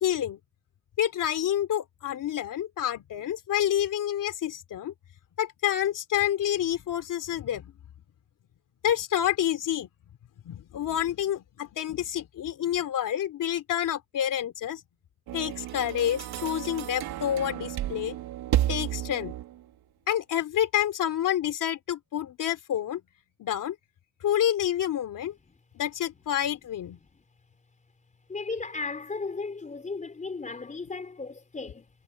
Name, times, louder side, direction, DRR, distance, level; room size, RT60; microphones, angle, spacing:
voice 1, 0.0-0.4 1.0-4.9 5.4-7.7 8.8-9.9 10.4-14.8 15.3-18.2 18.7-19.3 20.1-23.0 23.4-23.7 24.2-25.3 25.7-27.0, left 11 dB, 55° left, 3.1 m, -28 dB
sound 1, 15.3-19.7, right 13 dB, 80° right, 3.2 m, -32 dB
voice 2, 28.3-31.9, left 4 dB, 20° left, 4.5 m, -35 dB
cardioid pair, 160°, 37 cm